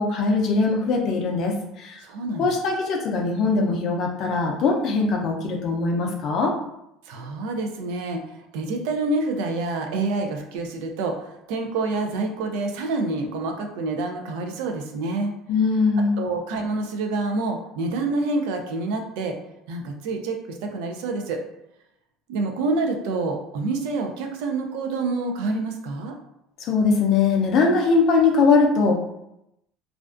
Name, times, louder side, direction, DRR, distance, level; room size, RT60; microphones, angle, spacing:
voice 1, 0.0-2.0 2.4-6.5 15.5-16.2 26.6-29.0, left 4 dB, 40° left, 1 dB, 0.4 m, -21 dB
voice 2, 2.0-2.6 7.1-15.3 16.2-19.4 19.7-21.4 22.3-26.1, right 3 dB, 80° right, 4 dB, 0.4 m, -27 dB
2.4 x 2.2 x 2.4 m, 0.83 s
cardioid pair, 180°, 0 cm